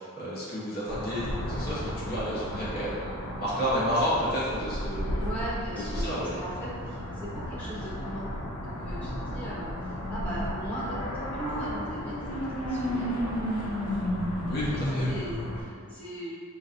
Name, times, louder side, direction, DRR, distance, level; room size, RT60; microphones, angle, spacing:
voice 1, 0.0-5.3 5.7-6.3 14.5-15.1, equal, 45° left, -9 dB, 1.0 m, -31 dB
sound 1, 0.9-15.6, equal, 85° left, 0.6 m, -33 dB
voice 2, 5.2-8.3 8.6-14.1 14.7-16.4, equal, 5° left, -10 dB, 0.8 m, -39 dB
3.8 x 2.5 x 2.6 m, 2.2 s
head